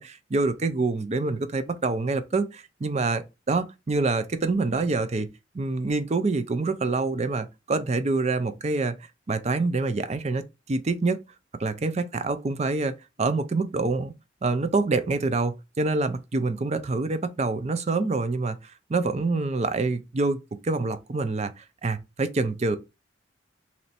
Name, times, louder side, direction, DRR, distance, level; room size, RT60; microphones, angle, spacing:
voice 1, 0.0-5.3 5.5-8.9 9.3-11.2 11.6-14.1 14.4-20.4 20.6-22.8, right 3 dB, 35° right, 0.5 m, -26 dB
3.1 x 2.8 x 4.1 m
head